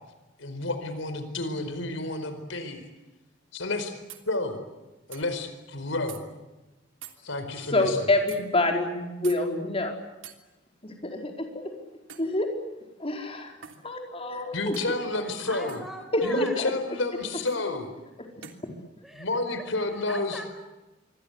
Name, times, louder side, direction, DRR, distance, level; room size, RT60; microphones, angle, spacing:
voice 1, 0.4-2.9 3.5-4.0 4.3-4.6 5.1-6.2 7.2-8.0 14.5-15.8 16.2-17.9 19.1-20.4, left 2 dB, 85° left, 9 dB, 4.8 m, -30 dB
sound 1, 4.1-4.3 5.1-5.3 6.1-6.2 7.0-7.2 8.3-8.4 9.2-9.4 10.2-10.4 12.1-12.3 13.6-13.8 14.7-15.0 15.7-15.9 17.5-17.6 18.4-18.6, right 9 dB, 90° right, 3.3 m, -44 dB
voice 2, 7.7-9.9 10.8-11.7 12.2-12.5 13.0-13.6 13.8-14.8 16.1-16.7, left 2 dB, 30° left, 3 dB, 4.7 m, -27 dB
voice 3, 15.2-16.6 19.0-20.5, equal, ahead, 5 dB, 5.2 m, -42 dB
27.0 x 24.0 x 8.2 m, 1.1 s
head